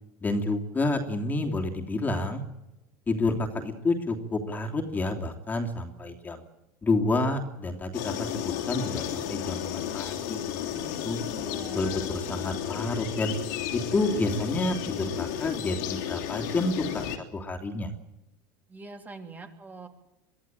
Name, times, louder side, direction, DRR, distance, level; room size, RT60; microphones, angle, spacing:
voice 1, 0.2-2.4 3.1-6.4 6.8-10.4 10.7-11.2 11.7-13.3 13.7-17.0 17.3-17.9, left 2 dB, 20° left, 3 dB, 3.1 m, -29 dB
sound 1, 7.9-17.2, left 9 dB, 70° left, 3.3 m, -33 dB
voice 2, 11.2-11.9 12.2-12.6 18.7-19.9, right 3 dB, 20° right, 5 dB, 3.1 m, -44 dB
23.5 x 14.5 x 9.2 m, 0.97 s
supercardioid pair, 110°, 9 cm